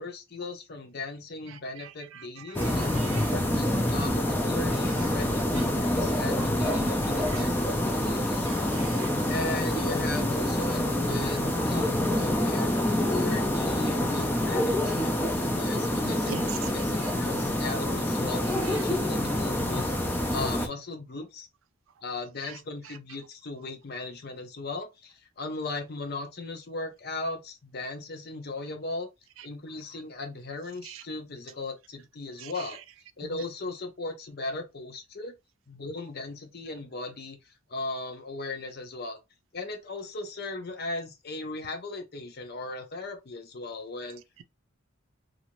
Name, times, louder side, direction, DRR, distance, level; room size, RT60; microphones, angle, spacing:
voice 1, 0.0-2.9 3.3-8.8 9.3-12.7 13.1-15.2 15.5-16.3 16.7-21.5 22.0-29.1 29.4-32.8 33.2-35.3 35.7-39.2 39.5-44.2, left 2 dB, 50° left, 0.7 m, -37 dB
voice 2, 1.5-3.3 5.6-5.7 7.3-7.5 8.5-9.1 14.9-15.0 16.0-16.7 17.0-17.1 18.6-18.8 30.8-31.0 32.4-32.6 33.2-33.4, right 7 dB, 85° right, 0.4 m, -43 dB
sound 1, 2.5-20.7, left 1 dB, 10° left, 0.4 m, -27 dB
2.7 x 2.5 x 3.0 m
head